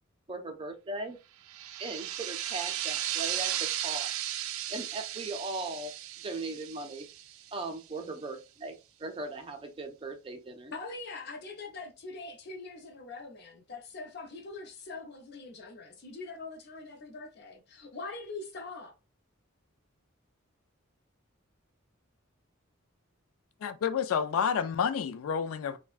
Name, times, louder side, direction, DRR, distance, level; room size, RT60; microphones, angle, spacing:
voice 1, 0.3-1.2 1.8-4.1 4.7-5.9 6.2-7.1 7.5-8.7 9.0-10.7, right 2 dB, 25° right, 0.5 m, -38 dB
sound 1, 1.5-7.8, right 12 dB, 85° right, 0.3 m, -35 dB
voice 2, 10.7-18.9, left 3 dB, 50° left, 0.7 m, -43 dB
voice 3, 23.6-25.8, left 7 dB, 85° left, 0.3 m, -29 dB
3.3 x 2.1 x 2.4 m
head